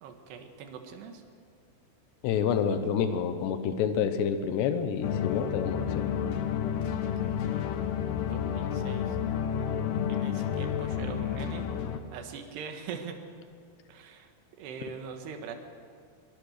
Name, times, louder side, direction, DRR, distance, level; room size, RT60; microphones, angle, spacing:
voice 1, 0.0-1.2 7.0-7.7 8.2-9.2 10.1-13.2 13.9-15.5, right 6 dB, 80° right, 5 dB, 3.7 m, -43 dB
voice 2, 2.2-6.1, left 7 dB, 85° left, 9 dB, 3.3 m, -28 dB
sound 1, 5.0-12.0, left 8 dB, 70° left, 2.3 m, -30 dB
23.0 x 23.0 x 6.6 m, 2.2 s
omnidirectional pair, 4.8 m